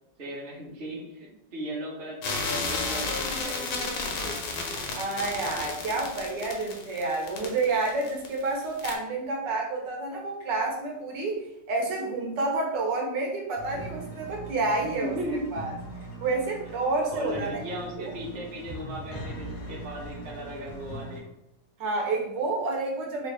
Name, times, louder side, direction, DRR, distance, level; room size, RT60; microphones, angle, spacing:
voice 1, 0.2-4.4 15.0-15.5 17.1-21.3, right 1 dB, 40° right, -5 dB, 0.7 m, -37 dB
sound 1, 2.2-8.5 8.8-8.9, left 3 dB, 70° left, 1.2 m, -32 dB
voice 2, 4.9-11.4 11.7-15.1 15.5-15.7 16.2-17.6 21.8-23.3, right 3 dB, 70° right, -1 dB, 1.3 m, -29 dB
sound 2, 13.6-21.2, right 1 dB, 55° left, 0.9 m, -41 dB
3.5 x 2.3 x 3.3 m, 0.83 s
omnidirectional pair, 2.1 m